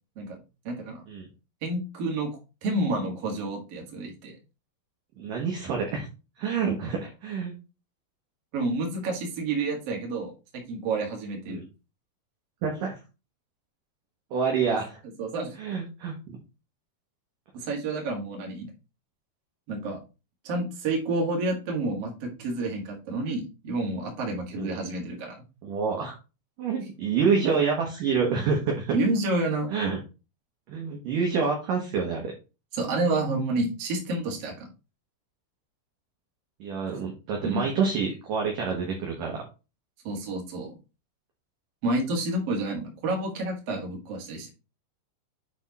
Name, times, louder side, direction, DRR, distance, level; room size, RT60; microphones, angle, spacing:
voice 1, 0.6-1.0 1.6-4.4 8.5-11.6 15.2-15.5 17.5-18.7 19.7-20.0 20.4-25.4 28.9-29.7 32.7-34.7 37.4-37.7 40.0-40.7 41.8-44.5, right 2 dB, 50° right, 1 dB, 2.1 m, -29 dB
voice 2, 5.2-6.1 6.4-7.5 11.5-11.6 12.6-13.0 14.3-15.0 15.6-16.4 24.6-24.7 25.6-26.2 26.6-28.9 29.7-30.0 30.7-32.3 36.6-39.4, right 5 dB, 65° right, 0 dB, 2.2 m, -27 dB
8.7 x 3.6 x 4.1 m, 0.30 s
omnidirectional pair, 5.2 m